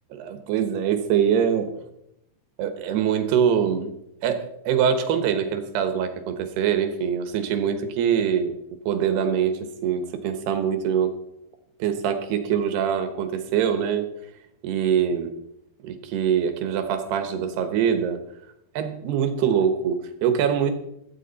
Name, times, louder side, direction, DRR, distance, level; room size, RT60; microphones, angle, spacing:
voice 1, 0.1-1.8 2.6-3.9 4.2-8.6 8.9-11.1 11.8-14.1 14.6-15.3 15.8-18.2 18.7-20.7, right 8 dB, 70° right, 8 dB, 2.8 m, -24 dB
15.5 x 13.0 x 4.1 m, 0.80 s
omnidirectional pair, 5.6 m